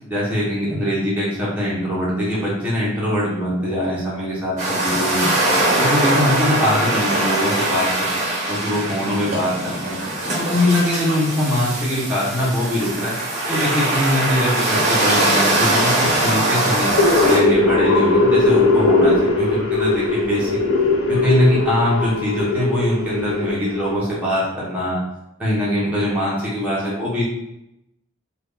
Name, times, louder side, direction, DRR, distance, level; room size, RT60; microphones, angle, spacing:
voice 1, 0.0-5.2 5.8-9.9 10.4-13.1 13.5-16.9 17.2-20.5 21.1-25.0 25.4-27.2, left 1 dB, 5° right, -8 dB, 1.0 m, -22 dB
sound 1, 4.6-17.4, right 1 dB, 35° right, 0.9 m, -21 dB
sound 2, 16.7-24.0, left 3 dB, 80° left, 0.6 m, -19 dB
3.0 x 2.5 x 3.5 m, 0.85 s
head